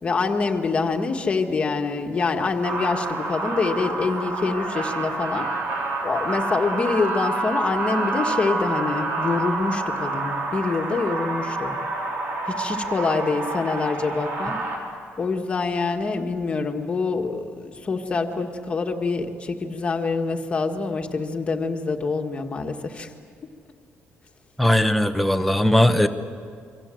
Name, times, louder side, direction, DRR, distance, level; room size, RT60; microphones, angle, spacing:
voice 1, 0.0-5.4 6.0-11.7 12.6-14.6 15.2-23.1, left 4 dB, 25° left, 4 dB, 1.7 m, -25 dB
sound 1, 2.6-14.8, right 2 dB, 50° right, 4.6 m, -28 dB
voice 2, 24.6-26.1, left 1 dB, ahead, 6 dB, 1.0 m, -18 dB
28.5 x 24.0 x 7.8 m, 2.2 s
cardioid pair, 175°, 5 cm